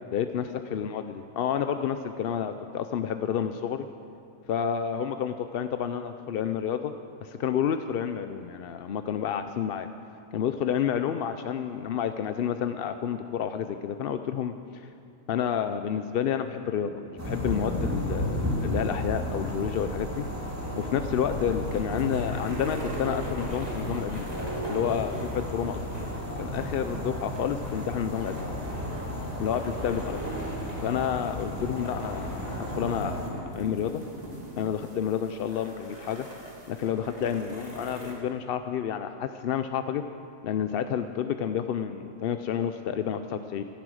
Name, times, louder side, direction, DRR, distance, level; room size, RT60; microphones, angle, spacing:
voice 1, 0.1-3.9 4.5-6.9 7.2-9.9 10.3-14.8 15.3-20.2 20.7-24.3 24.7-25.8 26.4-28.5 29.4-30.4 30.8-33.3 33.5-34.0 34.6-36.3 36.7-40.0 40.4-43.6, left 8 dB, 60° left, 8 dB, 0.6 m, -30 dB
sound 1, 17.2-33.3, equal, 10° right, 2.0 m, -33 dB
sound 2, 21.3-38.1, equal, 30° right, 2.6 m, -42 dB
15.0 x 13.5 x 6.3 m, 2.4 s
omnidirectional pair, 1.4 m